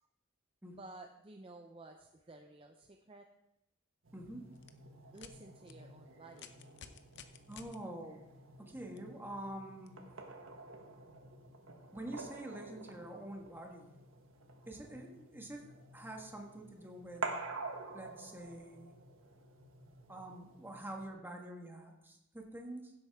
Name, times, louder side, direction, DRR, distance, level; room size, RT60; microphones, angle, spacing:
voice 1, 0.8-3.3 5.1-6.5, right 2 dB, 30° right, 4 dB, 0.6 m, -53 dB
sound 1, 4.0-21.1, right 3 dB, 85° right, 1.3 m, -49 dB
voice 2, 4.1-4.5 7.5-8.3 8.6-10.0 11.9-14.0 14.7-17.3 17.9-18.9 20.1-22.9, right 1 dB, 10° right, 2 dB, 1.4 m, -46 dB
sound 2, 4.5-4.7 5.1-5.3 5.7-5.8 6.3-7.8 9.0-9.1 9.9-10.0, left 8 dB, 60° left, 0.7 m, -53 dB
16.0 x 7.9 x 3.6 m, 0.90 s
head